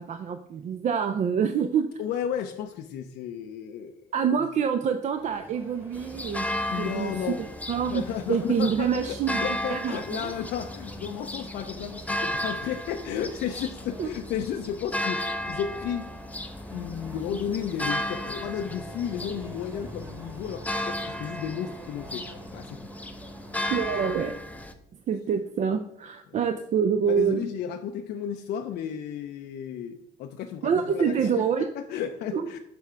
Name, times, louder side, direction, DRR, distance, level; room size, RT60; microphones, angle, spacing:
voice 1, 0.0-2.0 4.1-6.5 6.8-7.1 7.7-8.0 8.3-10.3 14.0-14.1 23.7-24.4 25.1-27.4 30.6-31.7 32.3-32.6, right 7 dB, 45° right, 8 dB, 0.5 m, -26 dB
voice 2, 2.0-4.0 6.7-7.4 7.9-16.1 16.7-22.9 27.1-32.6, left 9 dB, 75° left, 5 dB, 0.5 m, -33 dB
sound 1, 5.1-24.1, equal, 15° right, 1.3 m, -47 dB
sound 2, 5.9-24.7, left 1 dB, 10° left, 0.6 m, -35 dB
6.8 x 3.5 x 5.7 m, 0.74 s
cardioid pair, 110°, 17 cm